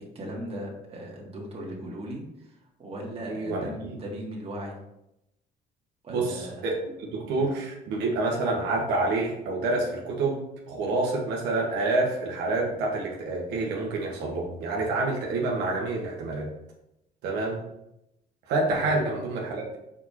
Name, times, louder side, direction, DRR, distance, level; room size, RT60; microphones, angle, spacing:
voice 1, 0.2-4.8 6.0-6.7 7.2-7.4 18.7-18.9, equal, 35° right, -2 dB, 2.1 m, -38 dB
voice 2, 3.2-3.6 6.1-10.4 10.7-16.5 17.2-17.6 18.5-19.8, right 2 dB, 85° right, -2 dB, 1.6 m, -28 dB
5.7 x 5.0 x 4.4 m, 0.85 s
cardioid pair, 110°, 17 cm